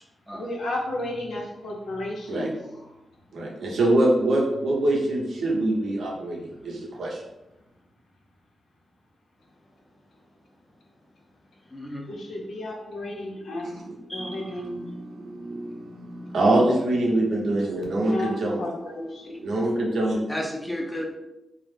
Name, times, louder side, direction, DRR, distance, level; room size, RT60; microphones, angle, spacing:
voice 1, 0.3-2.6 12.1-13.7 14.1-14.8 18.0-18.3 18.6-19.5, left 1 dB, 85° left, -2 dB, 0.7 m, -33 dB
voice 2, 3.3-7.2 13.6-18.6 19.4-20.2, right 1 dB, 80° right, -2 dB, 0.7 m, -25 dB
voice 3, 11.7-12.1 14.1-14.6 20.3-21.1, equal, 5° left, 0 dB, 0.4 m, -33 dB
2.3 x 2.0 x 3.2 m, 0.92 s
wide cardioid pair, 130°, 0 cm